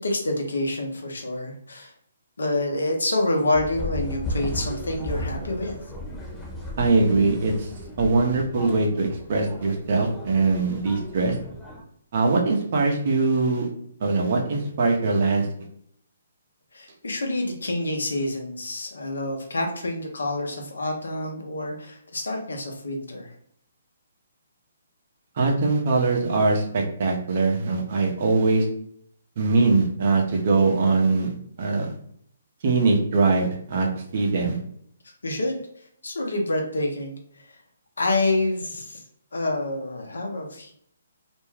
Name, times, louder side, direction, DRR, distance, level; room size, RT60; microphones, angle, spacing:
voice 1, 0.0-1.9 2.4-5.8 16.7-23.3 35.0-37.6 38.0-39.0 39.3-40.7, left 2 dB, 80° left, 2 dB, 0.7 m, -27 dB
sound 1, 3.5-11.8, left 1 dB, 15° left, 1.0 m, -35 dB
voice 2, 6.8-7.7 8.0-11.4 12.1-13.7 14.0-15.5 25.4-28.7 29.4-31.3 31.6-31.9 32.6-34.6, right 3 dB, 50° right, 1 dB, 0.7 m, -22 dB
2.5 x 2.2 x 3.2 m, 0.68 s
hypercardioid pair, 140°, 0 cm